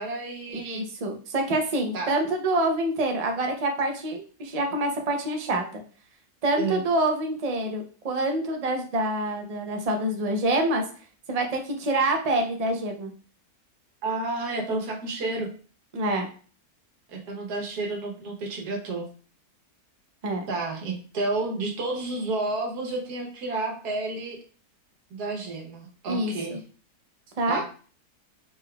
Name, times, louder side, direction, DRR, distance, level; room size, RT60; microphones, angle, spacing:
voice 1, 0.0-0.9 1.9-2.1 6.6-6.8 14.0-15.5 17.1-19.1 20.5-24.4 25.1-26.6 27.5-27.6, right 2 dB, 90° right, 1 dB, 1.4 m, -31 dB
voice 2, 0.5-5.6 6.4-10.8 11.3-13.1 15.9-16.3 20.2-20.5 26.1-26.6 27.4-27.6, right 1 dB, 70° right, 3 dB, 0.3 m, -26 dB
3.9 x 3.7 x 2.2 m, 0.39 s
omnidirectional pair, 1.6 m